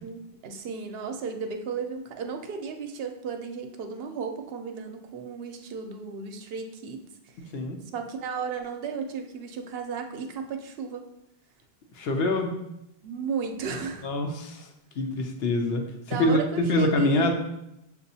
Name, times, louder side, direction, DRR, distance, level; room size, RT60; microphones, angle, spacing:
voice 1, 0.0-7.0 7.9-11.1 13.0-14.1 16.1-17.3, right 5 dB, 75° right, 5 dB, 0.8 m, -34 dB
voice 2, 11.9-12.5 14.0-14.7 15.0-17.3, left 1 dB, 75° left, 4 dB, 0.8 m, -25 dB
6.6 x 2.4 x 2.7 m, 0.83 s
omnidirectional pair, 1.0 m